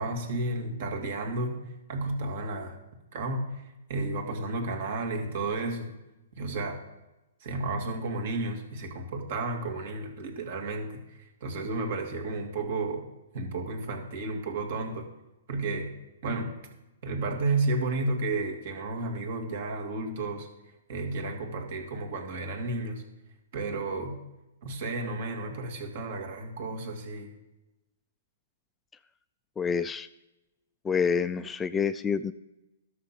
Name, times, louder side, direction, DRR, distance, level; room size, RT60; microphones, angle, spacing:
voice 1, 0.0-1.6 1.9-2.8 3.1-3.6 3.9-5.9 6.3-6.8 7.4-13.0 13.3-15.0 15.5-15.9 16.2-16.5 17.0-20.5 20.9-23.0 23.5-24.2 24.6-27.3, right 2 dB, 55° right, 3 dB, 2.3 m, -32 dB
voice 2, 29.6-30.1 30.8-32.3, left 6 dB, 15° left, 13 dB, 0.3 m, -27 dB
12.0 x 6.6 x 5.9 m, 0.99 s
hypercardioid pair, 140°, 0 cm